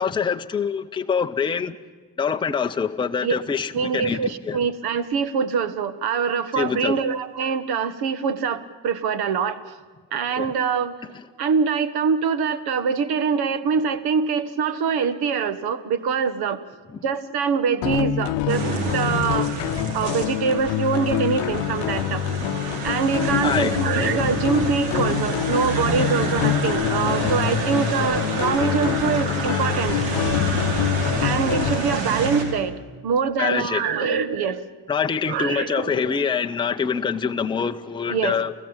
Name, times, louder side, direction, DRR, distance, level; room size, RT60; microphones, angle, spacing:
voice 1, 0.0-1.7 2.2-4.6 6.6-7.0 10.4-10.5 16.9-17.0 23.4-23.8 33.4-34.2 34.9-38.5, left 6 dB, 10° left, 0.7 m, -25 dB
voice 2, 3.7-9.7 10.1-10.9 11.4-16.6 17.0-18.6 18.9-19.5 19.9-22.2 22.8-30.0 31.2-32.7 33.0-34.6 35.3-36.2 38.1-38.4, right 6 dB, 55° right, 1.5 m, -24 dB
sound 1, 17.8-31.9, left 14 dB, 70° left, 0.8 m, -26 dB
sound 2, 18.5-32.4, right 2 dB, 80° right, 4.6 m, -28 dB
30.0 x 15.0 x 8.9 m
cardioid pair, 140°, 44 cm